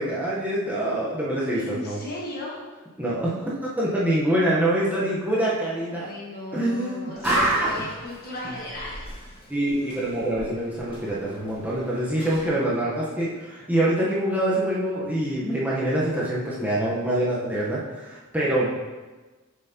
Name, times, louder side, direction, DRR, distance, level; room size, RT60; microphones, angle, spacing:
voice 1, 0.0-2.0 3.0-3.4 3.8-6.1 6.5-7.7 9.5-18.7, right 1 dB, 5° right, -7 dB, 0.9 m, -25 dB
voice 2, 1.5-2.6 5.9-9.0, left 1 dB, 45° left, -3 dB, 1.5 m, -36 dB
Slam, 7.1-12.5, equal, 25° left, 1.9 m, -40 dB
7.2 x 5.7 x 2.8 m, 1.2 s
head